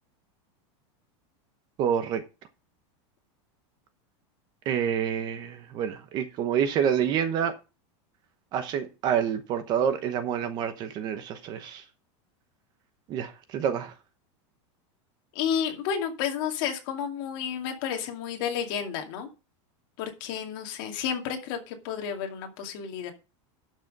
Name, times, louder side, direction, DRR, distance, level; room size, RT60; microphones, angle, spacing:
voice 1, 1.8-2.2 4.6-7.5 8.5-11.8 13.1-13.9, right 8 dB, 30° right, 1.0 m, -27 dB
voice 2, 15.3-19.3 20.0-23.1, left 8 dB, 45° left, 2.4 m, -31 dB
12.0 x 6.3 x 5.4 m
supercardioid pair, 175°, 16 cm